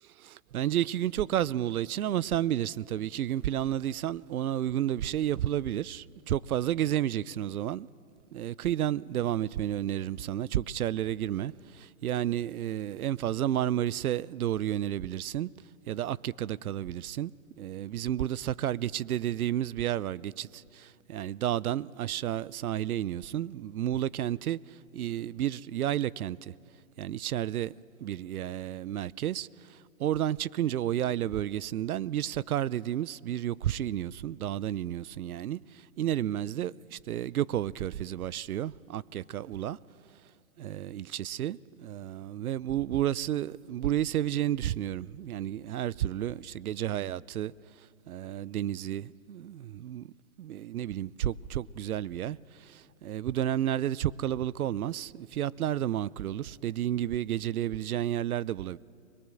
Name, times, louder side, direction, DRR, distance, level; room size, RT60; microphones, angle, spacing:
voice 1, 0.0-7.9 8.3-15.5 15.9-26.5 27.0-27.7 28.0-39.8 40.6-47.5 48.1-50.1 50.4-58.8, right 12 dB, 90° right, 0.6 m, -31 dB
22.5 x 21.5 x 7.6 m
hypercardioid pair, 140°, 42 cm